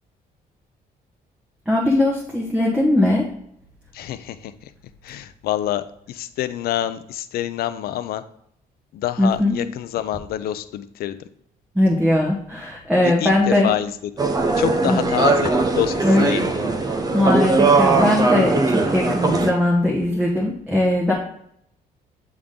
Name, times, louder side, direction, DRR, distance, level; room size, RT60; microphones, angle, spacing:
voice 1, 1.7-3.3 9.2-9.6 11.7-13.7 14.8-15.0 16.0-16.3 17.1-21.1, left 1 dB, 5° right, -4 dB, 1.2 m, -19 dB
voice 2, 3.9-4.7 5.0-8.2 8.9-11.2 13.0-14.1 14.5-16.6, left 12 dB, 85° left, 13 dB, 0.5 m, -27 dB
sound 1, 14.2-19.5, right 3 dB, 25° right, 0.7 m, -19 dB
8.4 x 3.6 x 3.7 m, 0.71 s
cardioid pair, 145°, 15 cm